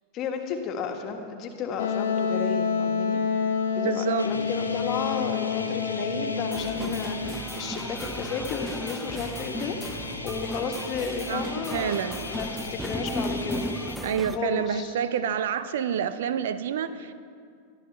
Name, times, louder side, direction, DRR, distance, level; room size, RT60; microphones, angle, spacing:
voice 1, 0.1-3.2 3.7-12.0 12.3-13.6 14.3-15.0, left 5 dB, 35° left, 4 dB, 1.7 m, -33 dB
Wind instrument woodwind instrument, 1.8-7.3, left 6 dB, 60° left, 0.8 m, -28 dB
voice 2, 3.8-4.3 11.3-11.4 11.7-12.2 14.0-17.1, right 8 dB, 60° right, 13 dB, 0.6 m, -28 dB
sound 1, 4.2-14.0, left 1 dB, 80° left, 1.2 m, -37 dB
sound 2, 6.5-14.4, equal, ahead, 0.6 m, -36 dB
22.0 x 13.0 x 3.4 m, 2.3 s
figure-of-eight pair, 90°, 0 cm